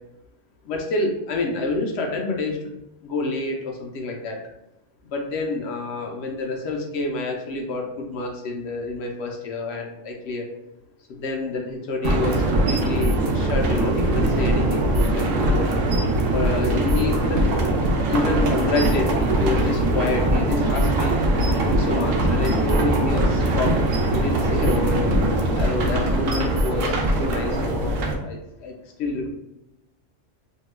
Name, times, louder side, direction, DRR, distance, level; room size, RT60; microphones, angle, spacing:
voice 1, 0.6-2.7 3.0-4.4 5.1-10.5 11.1-15.7 16.3-17.5 18.1-21.1 21.6-23.8 24.1-25.0 25.5-28.7 29.0-29.3, left 3 dB, 70° left, 1 dB, 0.8 m, -28 dB
sound 1, 12.0-27.3, equal, 60° right, 0.5 m, -25 dB
sound 2, 12.0-28.2, right 2 dB, 85° right, 0.9 m, -22 dB
2.8 x 2.2 x 3.0 m, 0.90 s
omnidirectional pair, 1.3 m